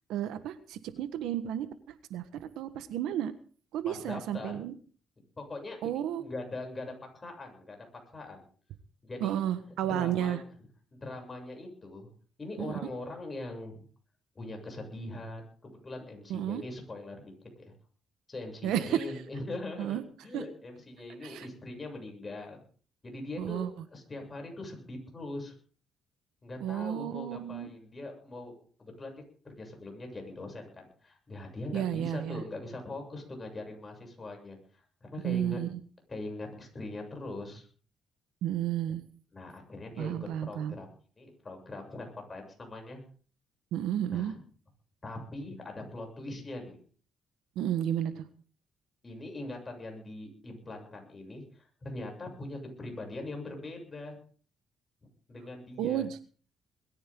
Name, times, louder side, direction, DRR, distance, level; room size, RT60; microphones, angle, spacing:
voice 1, 0.1-1.7 2.1-3.3 3.7-4.7 5.8-6.2 9.2-10.4 12.6-12.7 16.3-16.6 18.6-19.1 19.8-20.0 20.3-20.4 21.2-21.5 23.4-23.7 26.6-27.7 31.7-32.4 35.2-35.8 38.4-39.0 40.0-40.7 43.7-44.3 47.5-48.2 55.8-56.2, right 11 dB, 90° right, 11 dB, 1.3 m, -32 dB
voice 2, 3.8-4.6 5.4-7.8 8.1-8.4 9.0-9.4 9.8-10.4 10.9-12.1 12.4-13.8 14.3-17.7 18.3-22.6 23.0-25.5 26.4-28.5 28.8-34.6 35.0-35.6 36.1-37.7 39.3-40.1 40.4-40.9 41.2-43.0 44.1-44.4 45.0-46.8 49.0-54.2 55.3-56.0, left 2 dB, 30° left, 2 dB, 7.7 m, -41 dB
21.0 x 15.0 x 3.9 m, 0.43 s
cardioid pair, 90°, 0 cm